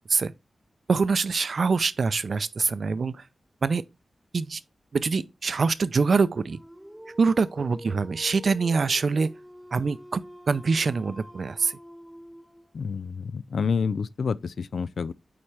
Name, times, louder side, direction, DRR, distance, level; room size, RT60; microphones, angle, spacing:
voice 1, 0.9-3.2 3.6-3.8 4.3-4.6 4.9-6.6 7.2-9.3 9.7-10.2 10.5-11.7, right 4 dB, 65° right, 0.5 m, -24 dB
Dog, 6.5-12.8, equal, ahead, 0.7 m, -46 dB
voice 2, 12.7-15.1, left 5 dB, 80° left, 0.3 m, -28 dB
8.6 x 4.3 x 3.3 m
wide cardioid pair, 75°, 0 cm